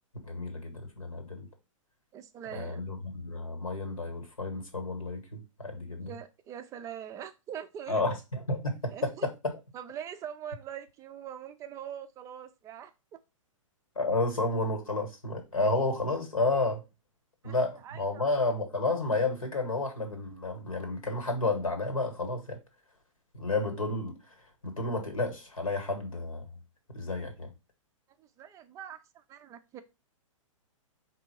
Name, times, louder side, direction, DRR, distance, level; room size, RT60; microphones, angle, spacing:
voice 1, 0.2-1.5 2.5-6.2 7.9-9.5 14.0-16.8 17.4-22.6 23.3-24.1 24.6-26.5 26.9-27.5, left 2 dB, 90° left, 1.6 m, -31 dB
voice 2, 2.1-2.9 6.0-8.0 8.9-9.3 9.7-13.2 17.4-17.6 17.8-18.4 28.2-29.8, right 9 dB, 20° right, 0.3 m, -43 dB
4.4 x 2.7 x 4.3 m
hypercardioid pair, 115°, 17 cm